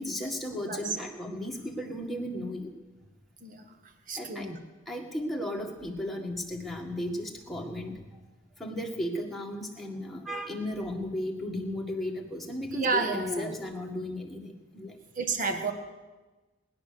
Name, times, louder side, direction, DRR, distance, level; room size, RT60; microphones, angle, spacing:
voice 1, 0.0-2.7 4.1-4.5 4.9-8.2 8.6-15.0, left 1 dB, ahead, -1 dB, 1.8 m, -35 dB
voice 2, 4.1-4.6 12.7-13.5 15.2-15.7, right 3 dB, 40° right, 6 dB, 1.6 m, -30 dB
20.0 x 10.5 x 6.8 m, 1.2 s
head